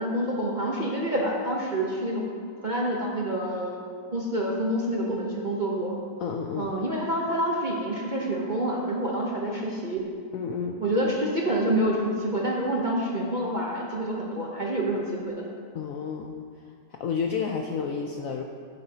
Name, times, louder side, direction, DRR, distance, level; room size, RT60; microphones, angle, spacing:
voice 1, 0.0-2.2 2.6-3.8 4.1-6.0 6.6-10.0 10.8-15.5, right 1 dB, 40° right, -3 dB, 0.6 m, -27 dB
voice 2, 6.2-6.7 10.3-10.8 15.7-16.4 16.9-18.4, left 6 dB, 85° left, 3 dB, 0.7 m, -30 dB
12.0 x 8.2 x 2.8 m, 2.2 s
omnidirectional pair, 2.0 m